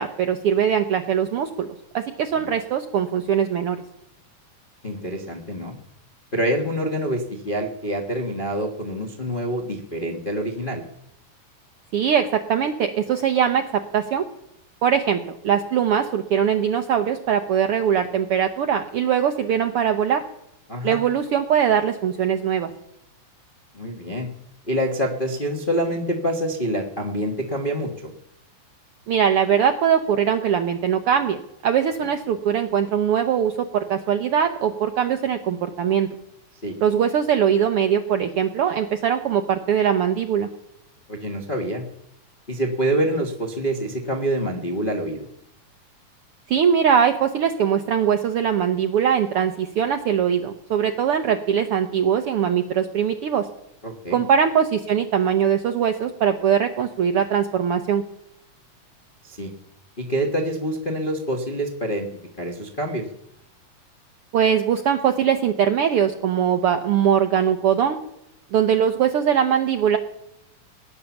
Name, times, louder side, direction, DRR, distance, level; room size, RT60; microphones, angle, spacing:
voice 1, 0.0-1.7 1.9-3.8 11.9-14.2 14.8-20.2 20.8-22.7 29.1-36.1 36.8-40.5 46.5-53.5 54.1-58.0 64.3-68.0 68.5-70.0, right 8 dB, 80° right, 6 dB, 1.3 m, -21 dB
voice 2, 4.8-5.7 6.3-10.8 20.7-21.0 23.7-24.3 24.7-28.1 36.6-36.7 41.1-41.8 42.5-45.3 53.8-54.2 59.2-59.5 60.0-62.1 62.4-63.1, equal, 75° left, 0 dB, 0.4 m, -26 dB
17.5 x 10.0 x 7.1 m, 0.83 s
omnidirectional pair, 3.6 m